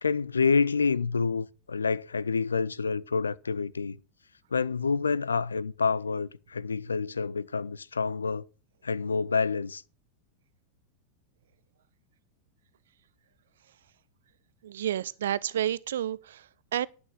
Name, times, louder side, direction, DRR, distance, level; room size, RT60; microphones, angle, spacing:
voice 1, 0.0-4.0 4.5-8.5 8.8-9.8, left 5 dB, 75° left, 0.4 m, -28 dB
voice 2, 14.6-16.9, right 11 dB, 60° right, 0.5 m, -30 dB
11.0 x 6.2 x 6.4 m
figure-of-eight pair, 90°, 0 cm